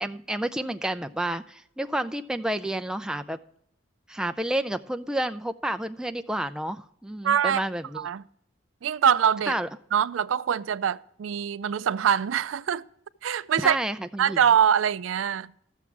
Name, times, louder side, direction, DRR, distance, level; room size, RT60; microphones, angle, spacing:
voice 1, 0.0-3.4 4.1-8.1 9.5-9.7 13.6-14.4, right 1 dB, 5° right, 0.3 m, -30 dB
voice 2, 7.2-7.7 8.0-8.2 8.8-9.5 9.9-12.9 13.2-13.8 14.2-15.5, right 8 dB, 75° right, 0.4 m, -24 dB
13.5 x 7.2 x 4.6 m
head